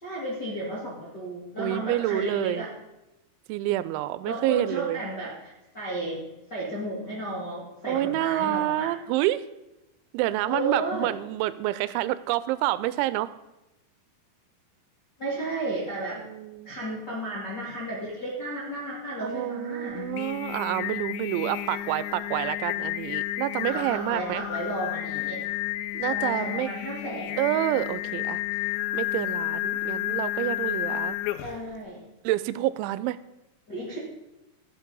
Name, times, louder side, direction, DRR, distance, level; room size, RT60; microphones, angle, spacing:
voice 1, 0.0-2.7 4.2-6.2 6.5-8.9 10.4-11.1 15.2-16.2 16.6-20.1 23.7-25.4 26.1-27.3 31.4-32.0 33.7-34.0, right 1 dB, 40° left, -6 dB, 1.5 m, -33 dB
voice 2, 1.6-2.7 3.5-5.0 7.8-9.4 10.1-13.3 16.2-16.7 19.2-24.4 25.9-26.7 27.4-28.4 28.9-31.2 32.2-33.2, right 15 dB, 85° right, 16 dB, 2.9 m, -28 dB
Singing, 19.9-31.7, left 14 dB, 80° left, 2.7 m, -31 dB
14.5 x 8.3 x 5.3 m, 0.95 s
omnidirectional pair, 5.4 m